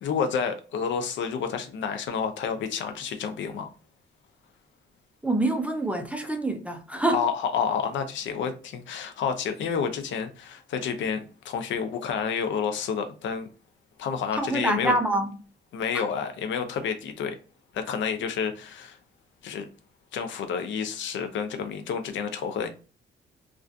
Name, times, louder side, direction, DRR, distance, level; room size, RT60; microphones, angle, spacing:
voice 1, 0.0-3.7 7.1-13.5 14.0-14.9 15.7-17.4 17.7-19.0 19.4-19.7 20.1-22.7, left 6 dB, 70° left, 0.5 m, -29 dB
voice 2, 5.2-7.2 14.3-15.3 15.9-16.0, right 2 dB, 5° right, 0.4 m, -26 dB
2.4 x 2.2 x 2.4 m
cardioid pair, 90°, 20 cm